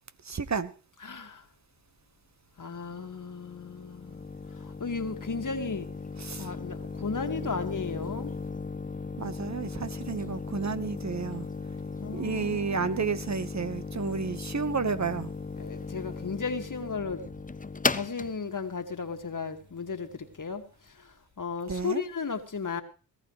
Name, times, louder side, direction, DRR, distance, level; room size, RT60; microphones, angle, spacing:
voice 1, 0.2-0.7 6.2-6.5 9.2-11.5 12.1-15.3 21.7-22.0, right 5 dB, 40° right, 1.4 m, -31 dB
voice 2, 1.0-1.4 2.6-4.3 4.5-5.9 6.4-8.3 12.0-13.1 15.6-17.2 17.9-22.8, left 5 dB, 45° left, 2.2 m, -35 dB
sound 1, 2.7-20.4, left 4 dB, 20° left, 0.8 m, -37 dB
18.5 x 14.5 x 3.3 m
supercardioid pair, 40°, 44 cm